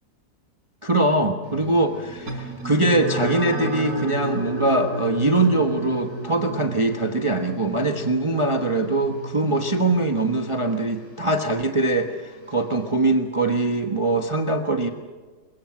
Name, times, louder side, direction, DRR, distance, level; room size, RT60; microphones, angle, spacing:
voice 1, 0.8-14.9, right 2 dB, 20° right, 5 dB, 1.1 m, -22 dB
sound 1, 1.4-12.9, right 4 dB, 50° left, 5.5 m, -38 dB
sound 2, 2.3-11.1, right 1 dB, 65° right, 4.6 m, -33 dB
23.0 x 21.5 x 7.6 m, 1.4 s
omnidirectional pair, 1.8 m